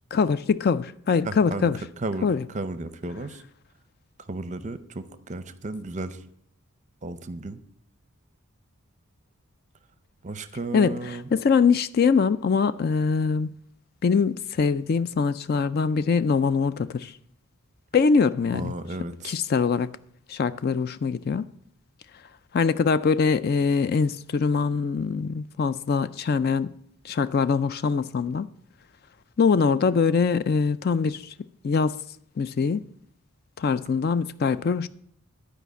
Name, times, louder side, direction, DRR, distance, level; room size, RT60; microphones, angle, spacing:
voice 1, 0.1-1.8 2.2-2.4 10.7-13.5 14.0-17.1 17.9-18.7 19.2-19.9 20.3-21.4 22.5-26.7 27.0-28.5 29.4-31.3 31.6-32.0 32.4-32.8 33.6-34.9, left 5 dB, 45° left, 0.3 m, -23 dB
voice 2, 1.2-1.7 2.0-3.4 4.3-6.2 7.0-7.6 10.2-11.3 18.5-19.4, right 2 dB, 35° right, 0.6 m, -34 dB
11.5 x 5.0 x 8.1 m
head